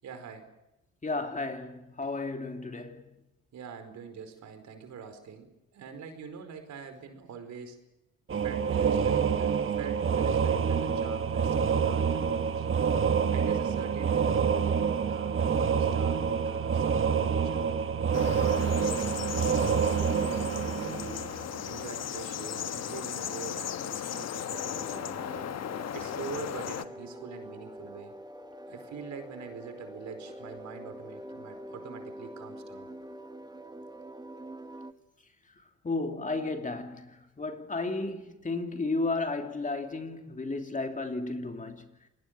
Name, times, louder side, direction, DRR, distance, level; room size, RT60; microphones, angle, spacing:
voice 1, 0.0-0.5 3.5-7.8 8.4-12.6 13.3-14.7 15.0-17.8 18.3-21.2 21.6-25.3 25.9-28.1 28.7-32.9, right 6 dB, 70° right, 4.9 m, -44 dB
voice 2, 1.0-3.0 35.8-41.8, left 3 dB, 25° left, 3.0 m, -33 dB
sound 1, 8.3-21.8, right 6 dB, 45° right, 1.7 m, -27 dB
sound 2, 18.1-26.8, left 9 dB, 60° left, 1.3 m, -36 dB
sound 3, 24.5-34.9, equal, 15° right, 1.4 m, -45 dB
27.5 x 20.0 x 7.7 m
cardioid pair, 90°, 30 cm